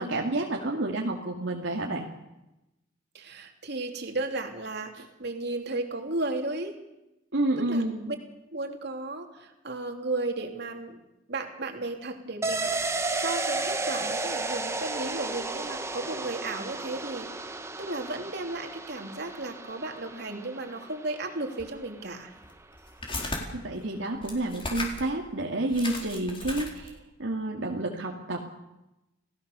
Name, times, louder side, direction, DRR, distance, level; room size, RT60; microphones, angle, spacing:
voice 1, 0.0-2.0 7.3-8.1 23.5-26.9 27.2-28.5, right 2 dB, 75° right, -1 dB, 2.4 m, -29 dB
voice 2, 3.1-4.9 5.2-6.7 7.7-8.2 8.5-11.0 11.3-22.3, right 2 dB, 60° right, 3 dB, 3.2 m, -34 dB
sound 1, 12.4-21.8 22.1-22.2, right 3 dB, 15° right, 1.3 m, -33 dB
sound 2, 21.6-21.7 22.4-23.4 24.1-25.1 25.4-25.5 25.7-27.0, left 2 dB, 30° left, 4.4 m, -36 dB
29.5 x 17.5 x 6.9 m, 0.95 s
head